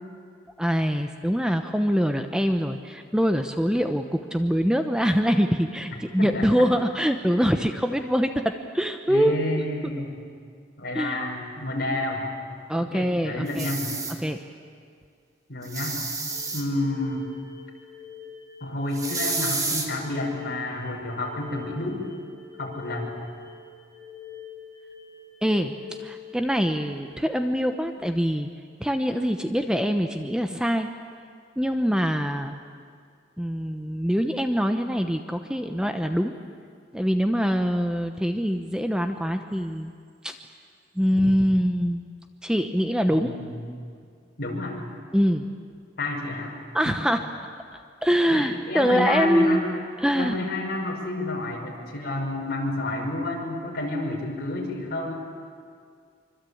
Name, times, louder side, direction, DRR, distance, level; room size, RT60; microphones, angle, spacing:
voice 1, 0.6-9.4 10.9-11.2 12.7-13.7 14.2-14.4 25.4-25.7 26.0-28.5 28.8-30.9 31.6-32.5 33.4-36.3 36.9-39.9 40.2-40.3 41.0-42.0 42.4-43.3 45.1-45.4 46.7-47.2 48.0-49.6 50.0-50.4, equal, 5° right, 6 dB, 0.9 m, -24 dB
voice 2, 5.9-6.7 9.1-10.2 10.8-12.3 12.8-13.9 15.5-16.0 16.5-17.3 18.6-22.1 22.6-23.1 43.1-43.6 44.4-44.8 46.0-46.5 48.3-49.6 50.1-55.1, left 2 dB, 55° left, -1 dB, 5.8 m, -30 dB
sound 1, 13.5-14.1 15.6-16.6 18.9-19.9, right 3 dB, 20° right, 2.8 m, -29 dB
sound 2, 16.3-27.1, left 7 dB, 70° right, 5.1 m, -45 dB
25.5 x 25.0 x 8.6 m, 2.2 s
head